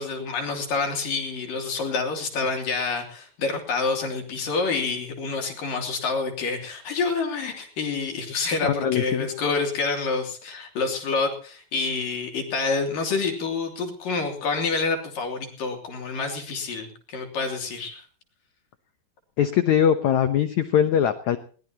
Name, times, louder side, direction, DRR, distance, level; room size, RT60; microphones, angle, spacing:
voice 1, 0.0-18.0, left 4 dB, 55° left, 3 dB, 4.6 m, -28 dB
voice 2, 8.6-9.3 19.4-21.4, left 9 dB, 75° left, 9 dB, 1.7 m, -21 dB
22.0 x 19.5 x 3.0 m, 0.40 s
omnidirectional pair, 4.8 m